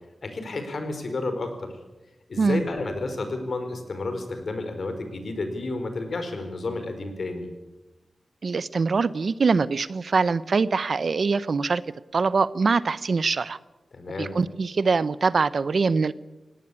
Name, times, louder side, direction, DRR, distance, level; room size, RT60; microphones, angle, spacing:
voice 1, 0.2-1.7 2.3-7.5 13.9-14.4, left 2 dB, 60° left, 7 dB, 4.5 m, -31 dB
voice 2, 8.4-11.8 12.1-13.6 14.2-16.1, right 4 dB, 60° right, 17 dB, 0.7 m, -23 dB
18.5 x 18.0 x 9.9 m, 1.0 s
wide cardioid pair, 105°, 0 cm